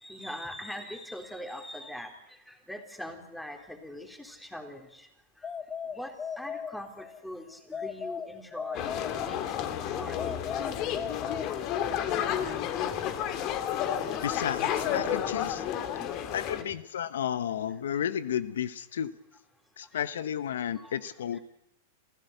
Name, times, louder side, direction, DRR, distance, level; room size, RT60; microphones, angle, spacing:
voice 1, 0.0-5.1 5.4-5.5 5.9-10.8 14.1-14.2 16.0-16.2 16.6-16.7 17.0-17.1 20.7-21.0 21.3-21.4, left 1 dB, 5° left, 6 dB, 3.7 m, -43 dB
sound 1, 5.4-7.2 7.7-9.6 10.2-12.0, left 6 dB, 20° left, 1.7 m, -38 dB
sound 2, 8.7-16.6, left 9 dB, 45° left, 2.3 m, -31 dB
voice 2, 14.2-15.6 16.3-19.1 19.8-21.4, left 9 dB, 80° left, 15 dB, 0.9 m, -32 dB
28.0 x 15.0 x 8.0 m, 0.83 s
hypercardioid pair, 120°, 0 cm